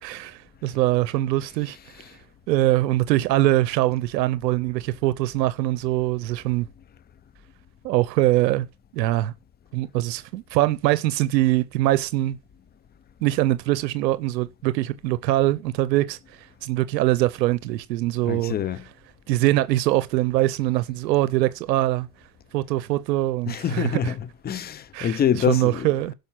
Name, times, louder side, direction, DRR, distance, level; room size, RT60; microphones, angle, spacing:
voice 1, 0.0-1.8 2.5-6.7 7.8-8.7 8.9-9.3 9.7-12.4 13.2-18.5 19.3-22.1 22.5-24.1 24.9-26.1, right 16 dB, 90° right, 0.7 m, -23 dB
voice 2, 18.2-18.8 23.5-25.9, left 9 dB, 20° left, 0.5 m, -25 dB
12.0 x 5.2 x 5.8 m
hypercardioid pair, 90°, 48 cm